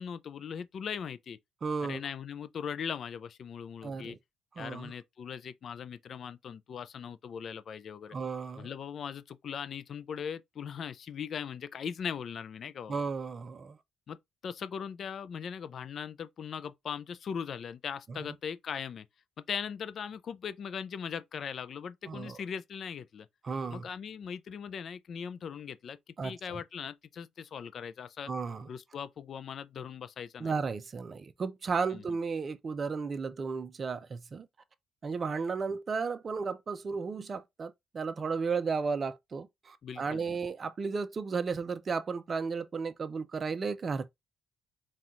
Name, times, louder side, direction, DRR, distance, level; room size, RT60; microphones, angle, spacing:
voice 1, 0.0-1.4 1.8-4.2 4.6-8.2 8.6-13.0 14.1-14.2 14.4-19.1 19.5-23.3 23.7-28.3 28.7-30.5 31.9-32.0 39.8-40.4, left 7 dB, 55° left, 0.4 m, -39 dB
voice 2, 1.6-2.0 3.8-4.2 4.6-4.9 8.1-8.7 12.9-13.8 18.1-18.2 22.1-22.4 23.4-23.9 26.2-26.6 28.3-28.7 30.4-34.5 35.0-44.1, right 5 dB, 40° right, 0.6 m, -34 dB
4.3 x 2.4 x 3.8 m
cardioid pair, 90°, 0 cm